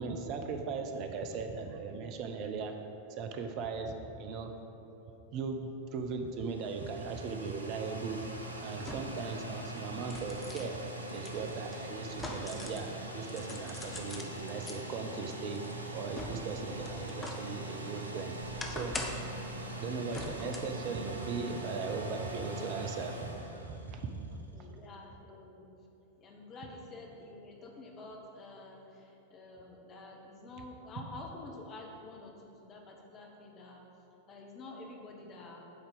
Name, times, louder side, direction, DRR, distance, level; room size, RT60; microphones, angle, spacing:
voice 1, 0.0-2.7 3.2-4.5 5.3-8.2 8.6-10.8 11.1-12.9 13.1-15.6 15.9-18.3 18.7-19.0 19.8-24.3, right 4 dB, 40° right, 5 dB, 0.7 m, -38 dB
sound 1, 6.2-24.4, right 1 dB, 80° right, 0.7 m, -42 dB
sound 2, 7.5-7.6 8.8-9.3 9.7-12.9 13.2-14.8 15.3-17.5 17.9-19.4 20.1-20.8 21.2-21.3, left 2 dB, 10° left, 0.9 m, -43 dB
voice 2, 24.5-25.7 26.2-33.8 34.3-35.7, left 2 dB, 30° left, 0 dB, 1.1 m, -49 dB
8.0 x 4.4 x 6.9 m, 2.8 s
figure-of-eight pair, 90°, 0 cm